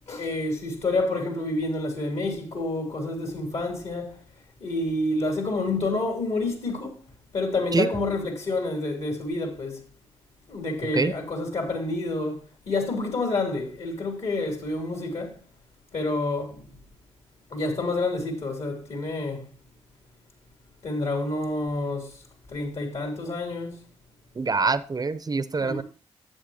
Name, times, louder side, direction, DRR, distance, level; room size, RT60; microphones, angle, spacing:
voice 1, 0.1-4.2 4.6-7.0 7.3-9.8 10.5-15.4 15.9-16.7 17.5-19.5 20.8-22.1 22.5-23.8 25.6-25.8, left 2 dB, 65° left, 3.3 m, -28 dB
voice 2, 24.4-25.8, right 4 dB, 35° right, 0.6 m, -25 dB
11.5 x 8.0 x 2.8 m
supercardioid pair, 55°, 12 cm